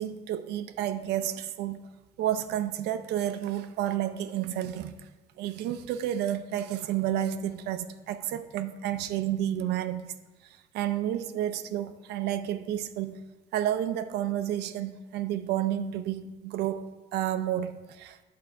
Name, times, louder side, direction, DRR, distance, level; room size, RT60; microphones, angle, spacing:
voice 1, 0.0-1.8 2.2-4.9 5.4-10.1 10.4-13.2 13.5-18.2, right 11 dB, 80° right, 0.5 m, -31 dB
8.5 x 3.7 x 4.4 m
cardioid pair, 110°, 17 cm